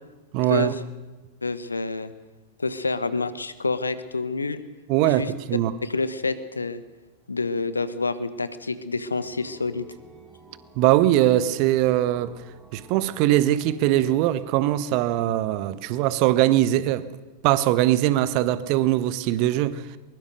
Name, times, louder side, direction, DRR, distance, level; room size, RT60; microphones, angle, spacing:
voice 1, 0.3-0.7 4.9-5.7 10.8-12.3 12.7-17.1 17.4-19.8, right 14 dB, 45° right, 1.3 m, -21 dB
voice 2, 1.4-2.1 2.6-4.6 5.0-5.3 5.8-6.8 7.3-9.8, left 3 dB, 80° left, 1.5 m, -28 dB
sound 1, 9.0-16.5, right 3 dB, 15° right, 5.3 m, -50 dB
23.0 x 21.5 x 6.6 m
figure-of-eight pair, 90°, 0 cm